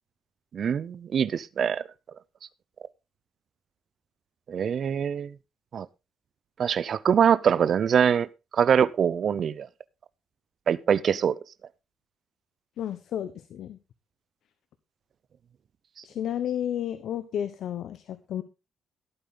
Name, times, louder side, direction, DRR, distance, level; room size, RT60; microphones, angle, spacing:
voice 1, 0.5-1.8 4.5-5.3 5.7-5.9 6.6-8.3 8.5-9.7 10.7-11.4, right 8 dB, 55° right, 0.6 m, -23 dB
voice 2, 12.8-13.8 16.0-18.4, left 10 dB, 70° left, 1.0 m, -32 dB
16.0 x 9.0 x 3.8 m
cardioid pair, 90°, 0 cm